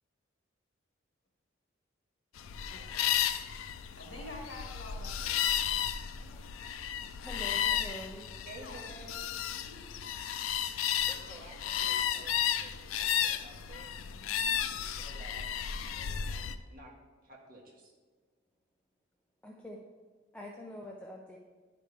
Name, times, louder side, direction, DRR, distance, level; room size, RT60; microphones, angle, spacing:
sound 1, 2.4-16.5, left 9 dB, 90° left, 0.4 m, -33 dB
voice 1, 2.7-3.2 4.0-5.5 8.6-9.9, left 1 dB, 70° left, 1.9 m, -48 dB
voice 2, 7.2-8.3 19.4-19.8 20.3-21.4, left 1 dB, 5° left, 0.5 m, -45 dB
voice 3, 8.5-9.3 11.1-14.0 14.5-15.4 15.8-16.9 17.2-17.9, right 2 dB, 45° right, 1.6 m, -52 dB
11.0 x 5.1 x 3.3 m
head